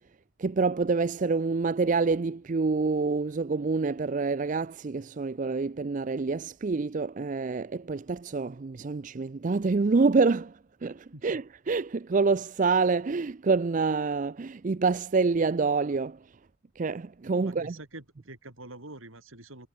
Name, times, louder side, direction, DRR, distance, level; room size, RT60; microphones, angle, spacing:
voice 1, 0.4-16.4 16.8-17.7, right 4 dB, 40° right, 0.4 m, -27 dB
voice 2, 17.4-19.7, right 2 dB, 85° right, 6.3 m, -46 dB
head